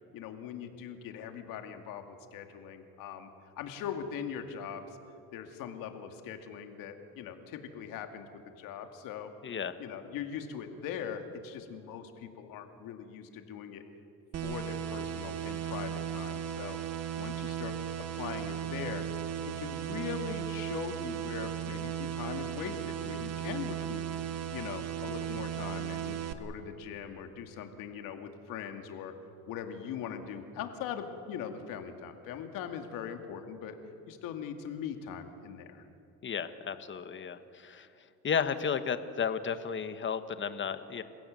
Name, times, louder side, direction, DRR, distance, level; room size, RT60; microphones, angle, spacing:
voice 1, 0.1-3.3 3.6-4.9 5.3-9.3 9.8-13.8 14.4-16.8 17.2-17.8 18.2-19.0 19.4-24.0 24.5-29.1 29.5-33.8 34.1-35.8, left 8 dB, 80° left, 6 dB, 2.3 m, -41 dB
voice 2, 9.4-9.7 36.2-37.9 38.2-41.0, left 6 dB, 35° left, 11 dB, 1.4 m, -33 dB
sound 1, 14.3-26.3, right 9 dB, 50° right, 1.5 m, -36 dB
29.0 x 16.0 x 7.7 m, 2.6 s
cardioid pair, 105°, 33 cm